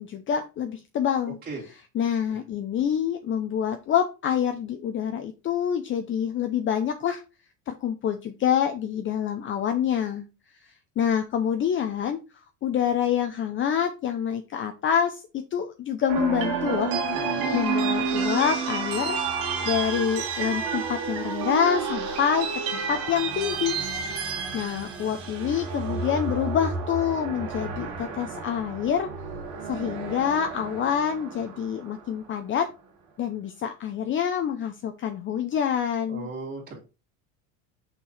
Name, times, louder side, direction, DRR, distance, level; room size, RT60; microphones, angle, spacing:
voice 1, 0.0-1.4 1.7-7.2 7.7-10.2 11.0-12.2 12.6-15.2 15.5-19.2 19.6-23.8 24.5-29.1 29.7-32.7 33.2-36.3, left 8 dB, 35° left, 7 dB, 0.6 m, -26 dB
sound 1, 16.1-32.3, right 5 dB, 70° right, 2.1 m, -30 dB
voice 2, 17.1-17.6 36.1-36.8, right 3 dB, 25° right, -5 dB, 2.6 m, -37 dB
5.9 x 4.6 x 4.1 m, 0.30 s
cardioid pair, 125°, 36 cm